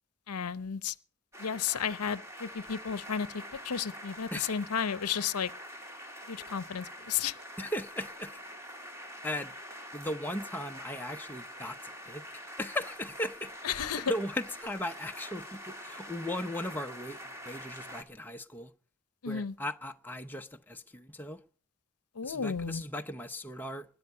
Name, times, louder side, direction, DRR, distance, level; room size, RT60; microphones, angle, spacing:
voice 1, 0.3-1.0 1.4-5.5 6.3-7.4 13.6-14.1 19.2-19.6 22.1-22.8, left 7 dB, 85° left, 0.7 m, -33 dB
sound 1, 1.3-18.0, equal, 10° right, 1.9 m, -45 dB
voice 2, 7.6-8.4 9.2-9.5 9.9-12.2 12.6-13.5 14.1-17.2 17.4-18.7 19.3-21.4 22.2-23.9, left 1 dB, 10° left, 0.7 m, -37 dB
20.5 x 10.5 x 5.5 m
head